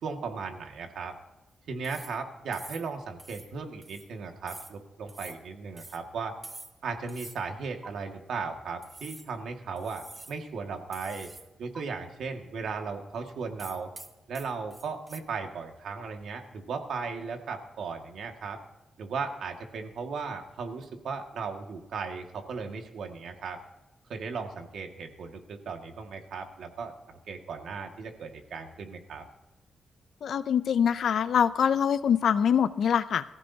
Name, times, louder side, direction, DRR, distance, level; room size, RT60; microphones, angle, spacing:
voice 1, 0.0-1.2 1.7-6.4 6.8-11.3 11.6-13.9 14.3-18.6 19.0-23.6 24.1-29.2, right 5 dB, 75° right, 3 dB, 1.9 m, -36 dB
sound 1, 1.8-2.2 2.5-2.9 3.2-3.5 3.8-4.1 4.5-4.8 5.1-5.4 5.8-6.0 6.4-6.8 7.1-7.4 7.8-7.9 8.8-9.3 9.8-10.4 10.9-11.5 11.7-11.8 13.6-15.2, right 2 dB, 15° right, 0.7 m, -46 dB
voice 2, 30.2-33.2, left 8 dB, 60° left, 13 dB, 0.5 m, -24 dB
22.5 x 15.0 x 2.8 m, 0.98 s
wide cardioid pair, 175°, 0 cm